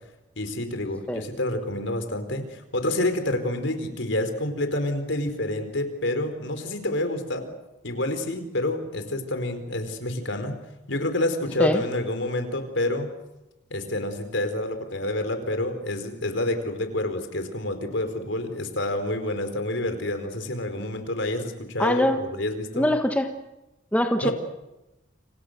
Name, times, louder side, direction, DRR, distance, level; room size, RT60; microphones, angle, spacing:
voice 1, 0.4-7.5 7.8-10.6 10.9-13.1 13.7-22.9 24.2-24.3, left 1 dB, 70° left, 8 dB, 4.5 m, -28 dB
voice 2, 21.8-22.2 22.7-23.3 23.9-24.3, left 1 dB, 5° left, 5 dB, 1.2 m, -22 dB
29.5 x 26.5 x 6.8 m, 0.99 s
head